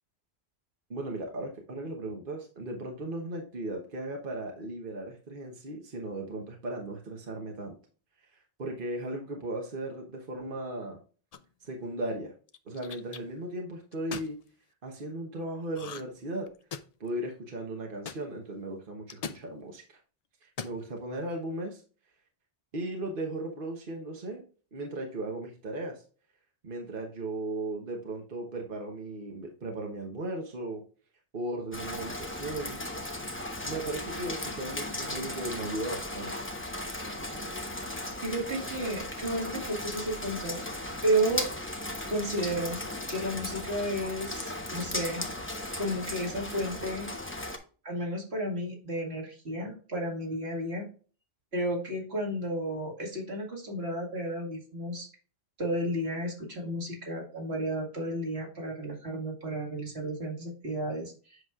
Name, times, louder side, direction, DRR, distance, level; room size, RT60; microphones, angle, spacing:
voice 1, 0.9-7.7 8.6-11.0 11.6-12.3 12.7-14.4 14.8-16.5 17.0-20.0 20.4-21.8 22.7-24.4 24.7-26.0 26.6-30.8 31.3-32.8 33.6-36.3, right 1 dB, 60° right, 1 dB, 1.3 m, -36 dB
sound 1, 11.3-11.7 12.5-13.2 13.9-14.3 15.7-16.2 16.5-17.1 18.1-18.2 19.1-19.4 20.4-20.8, left 6 dB, 50° left, 0.5 m, -39 dB
Rain, 31.7-47.6, left 1 dB, 15° left, 0.9 m, -36 dB
voice 2, 38.2-40.6 41.0-41.5 42.1-42.8 43.1-45.3 45.8-47.1 47.8-50.9 51.5-55.1 55.6-61.4, right 1 dB, 85° right, -1 dB, 2.3 m, -32 dB
8.0 x 6.1 x 2.4 m, 0.38 s
omnidirectional pair, 1.0 m